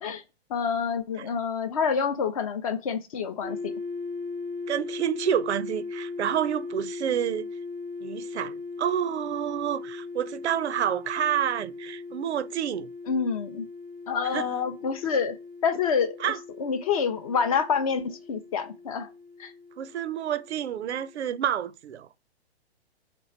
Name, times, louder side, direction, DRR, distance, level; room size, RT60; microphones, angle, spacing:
voice 1, 0.5-3.7 13.1-13.7 14.1-16.3 16.6-19.1 19.4-19.5, left 6 dB, 35° left, 0.4 m, -27 dB
sound 1, 3.4-21.4, left 4 dB, 20° right, 0.5 m, -39 dB
voice 2, 4.7-7.5 8.0-12.9 14.3-14.5 16.2-16.4 19.8-22.1, right 10 dB, 80° right, 0.5 m, -29 dB
3.3 x 3.0 x 4.2 m
hypercardioid pair, 140°, 33 cm